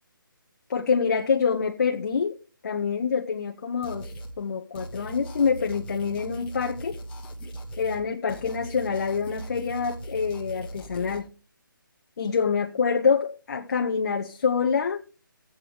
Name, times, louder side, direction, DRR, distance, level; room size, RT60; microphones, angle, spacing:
voice 1, 0.7-2.4 2.6-7.0 7.8-11.3 12.2-15.0, left 5 dB, 50° left, 0.8 m, -26 dB
sound 1, 3.8-4.3 4.7-8.0 8.3-11.2, right 1 dB, 10° left, 1.2 m, -39 dB
19.5 x 8.0 x 3.3 m
figure-of-eight pair, 150°, 12 cm